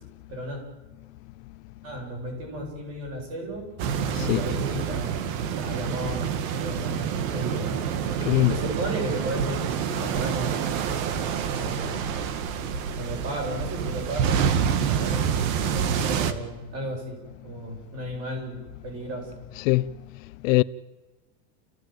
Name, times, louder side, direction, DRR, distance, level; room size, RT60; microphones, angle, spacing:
voice 1, 0.3-0.6 1.8-3.6 4.1-5.2 5.5-7.7 8.5-10.8 11.5-12.1 13.0-14.4 14.7-17.2 17.4-19.3, right 1 dB, 35° right, 8.0 m, -34 dB
sound 1, 3.8-16.3, right 7 dB, 65° right, 2.0 m, -27 dB
voice 2, 8.2-8.5 19.6-19.9 20.4-20.6, left 21 dB, 65° left, 0.7 m, -20 dB
30.0 x 15.5 x 9.2 m
cardioid pair, 175°, 43 cm